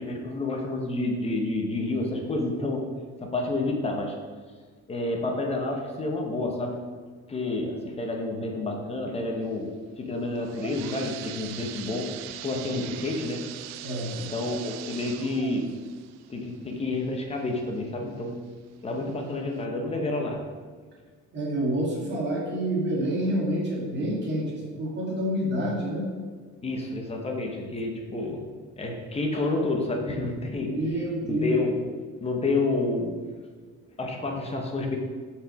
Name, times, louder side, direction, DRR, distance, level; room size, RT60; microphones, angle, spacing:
voice 1, 0.0-2.9 3.2-4.2 4.9-6.8 7.3-12.1 12.4-13.4 13.7-13.8 14.2-15.7 16.3-18.4 18.8-20.5 26.6-28.5 28.8-30.7 31.3-31.7 32.2-33.2 34.0-35.0, left 2 dB, 20° left, 2 dB, 0.9 m, -29 dB
sound 1, 10.2-17.8 18.3-18.4 19.1-19.2 19.6-19.7, right 12 dB, 60° right, 0.4 m, -41 dB
voice 2, 13.8-14.2 21.3-26.1 30.7-31.6, right 1 dB, 35° right, -3 dB, 2.1 m, -28 dB
6.4 x 5.0 x 5.7 m, 1.5 s
cardioid pair, 165°, 30 cm